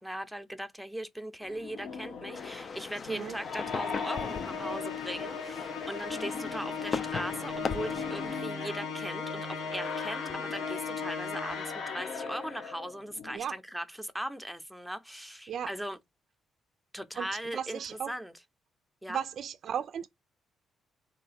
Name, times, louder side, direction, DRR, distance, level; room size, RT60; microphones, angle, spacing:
voice 1, 0.0-16.0 16.9-18.3 19.0-19.2, right 1 dB, ahead, 0.7 m, -39 dB
sound 1, 1.4-13.4, left 5 dB, 70° left, 0.9 m, -42 dB
sound 2, 2.3-8.4, left 5 dB, 45° left, 0.4 m, -39 dB
Musical instrument, 3.6-12.0, left 5 dB, 85° left, 1.2 m, -37 dB
voice 2, 17.5-18.1 19.1-20.1, right 8 dB, 60° right, 0.3 m, -35 dB
3.8 x 2.2 x 4.1 m
cardioid pair, 90°, 0 cm